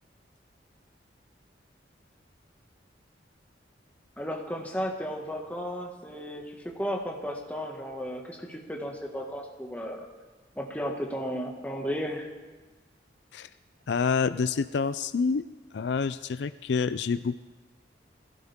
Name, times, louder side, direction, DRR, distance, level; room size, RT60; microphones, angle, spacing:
voice 1, 4.2-6.4 6.8-10.1 10.6-12.3, equal, 10° left, -1 dB, 1.8 m, -34 dB
voice 2, 13.9-15.4 15.7-17.4, left 5 dB, 70° left, 13 dB, 0.4 m, -27 dB
20.5 x 16.0 x 3.6 m, 1.3 s
head